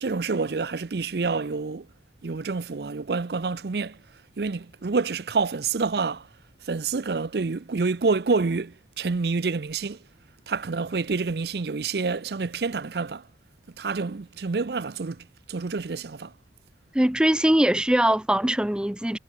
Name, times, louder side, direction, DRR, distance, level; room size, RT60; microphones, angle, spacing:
voice 1, 0.0-1.9 2.2-4.0 4.4-6.3 6.7-10.0 10.5-13.2 13.8-16.3, right 4 dB, 60° right, 0.6 m, -28 dB
voice 2, 16.9-19.2, right 1 dB, 5° right, 0.5 m, -21 dB
head